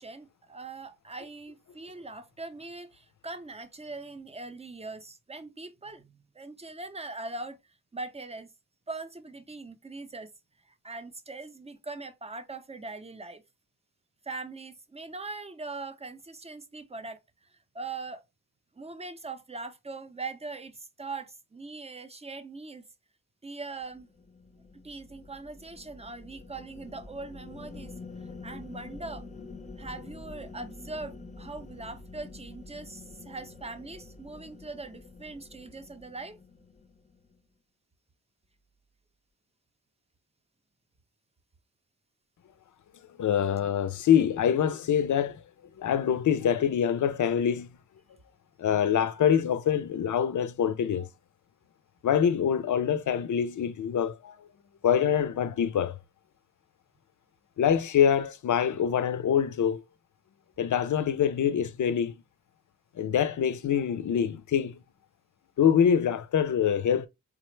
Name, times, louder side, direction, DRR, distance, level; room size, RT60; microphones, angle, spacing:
voice 1, 0.0-7.6 7.9-8.5 8.9-10.3 10.7-13.4 14.2-17.2 17.7-18.2 18.8-22.8 23.4-24.1 24.7-29.3 29.8-36.4, right 3 dB, 20° right, 0.6 m, -41 dB
sound 1, 23.8-37.4, left 3 dB, 25° left, 0.6 m, -47 dB
voice 2, 43.2-45.4 45.8-47.7 48.6-51.1 52.0-54.4 54.8-56.0 57.6-59.8 60.6-62.1 63.0-64.8 65.6-67.1, left 8 dB, 65° left, 0.5 m, -25 dB
4.9 x 2.1 x 3.1 m
cardioid pair, 75°, 33 cm